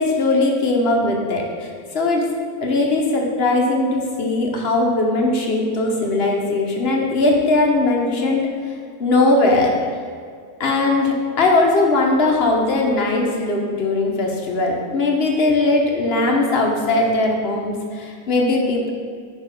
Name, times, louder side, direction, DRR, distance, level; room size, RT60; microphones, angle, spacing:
voice 1, 0.0-2.3 2.6-8.5 9.0-9.7 10.6-18.9, left 2 dB, 50° left, 1 dB, 0.9 m, -19 dB
5.5 x 4.2 x 5.1 m, 2.2 s
omnidirectional pair, 1.6 m